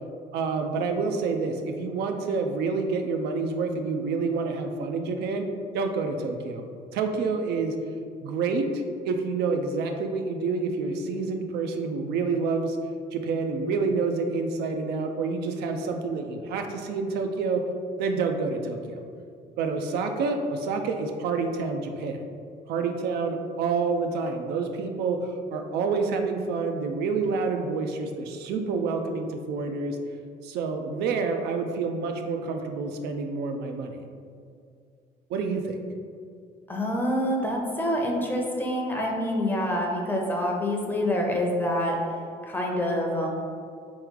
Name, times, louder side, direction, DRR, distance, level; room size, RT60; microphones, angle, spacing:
voice 1, 0.3-5.5 5.7-6.6 6.9-7.7 8.2-12.8 13.1-17.6 18.0-19.0 19.6-22.2 22.7-30.0 30.4-34.0 35.3-35.8, right 4 dB, 75° right, 4 dB, 0.4 m, -28 dB
voice 2, 36.7-42.0 42.4-43.3, left 1 dB, 10° left, -1 dB, 0.6 m, -26 dB
3.3 x 3.1 x 3.7 m, 2.2 s
cardioid pair, 110°, 17 cm